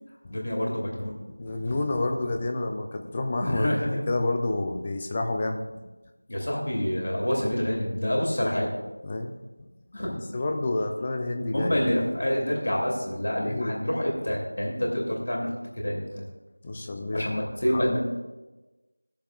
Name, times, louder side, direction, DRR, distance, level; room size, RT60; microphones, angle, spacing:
voice 1, 0.3-1.2 3.4-4.1 6.3-8.7 9.9-10.2 11.5-15.5 15.8-16.1 17.1-18.0, equal, 50° left, -2 dB, 2.7 m, -27 dB
voice 2, 1.4-3.7 4.1-5.6 9.0-9.6 10.3-12.1 13.4-13.7 16.6-17.3 17.7-18.0, left 2 dB, 15° left, 4 dB, 0.4 m, -29 dB
15.5 x 7.0 x 2.4 m, 1.2 s
figure-of-eight pair, 175°, 0 cm